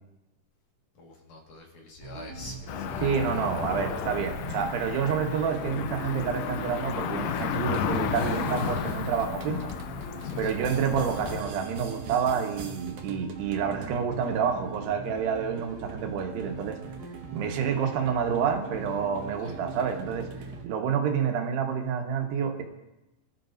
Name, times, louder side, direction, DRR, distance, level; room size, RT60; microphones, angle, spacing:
voice 1, 0.9-3.5 10.2-10.6 19.4-19.6, left 2 dB, 60° left, 0 dB, 2.9 m, -45 dB
sound 1, 2.0-20.6, right 5 dB, 50° right, 2.9 m, -42 dB
Cricket / Motor vehicle (road), 2.7-11.4, left 8 dB, 90° left, 1.8 m, -33 dB
voice 2, 3.0-9.7 10.4-16.8 17.3-20.3 20.6-22.6, right 7 dB, 90° right, 3 dB, 3.4 m, -28 dB
sound 2, 7.3-20.7, right 4 dB, 65° right, 2.0 m, -47 dB
23.5 x 12.0 x 2.6 m, 0.98 s
omnidirectional pair, 4.6 m